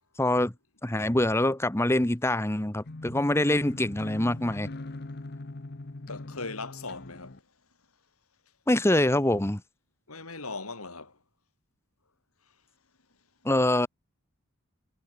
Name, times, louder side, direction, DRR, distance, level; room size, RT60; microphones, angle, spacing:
voice 1, 0.2-0.5 0.8-4.7 8.7-9.6 13.4-13.9, left 1 dB, 10° left, 1.0 m, -24 dB
sound 1, 2.8-7.4, left 2 dB, 45° left, 0.9 m, -41 dB
voice 2, 6.1-7.4 10.1-11.2, left 3 dB, 85° left, 5.9 m, -39 dB
head